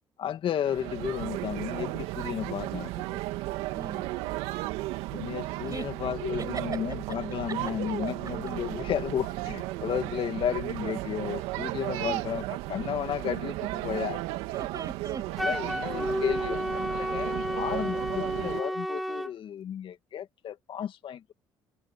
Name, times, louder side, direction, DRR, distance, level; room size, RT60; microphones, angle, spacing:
voice 1, 0.2-3.2 5.1-14.2 15.4-21.3, left 9 dB, 60° left, 2.2 m, -33 dB
sound 1, 0.6-18.6, right 18 dB, 85° right, 2.2 m, -34 dB
voice 2, 3.7-4.1 5.6-5.9 6.4-6.6 12.0-12.2 14.5-15.5, right 5 dB, 40° right, 6.8 m, -39 dB
Wind instrument woodwind instrument, 15.4-19.3, equal, ahead, 2.9 m, -31 dB
supercardioid pair, 65°, 10 cm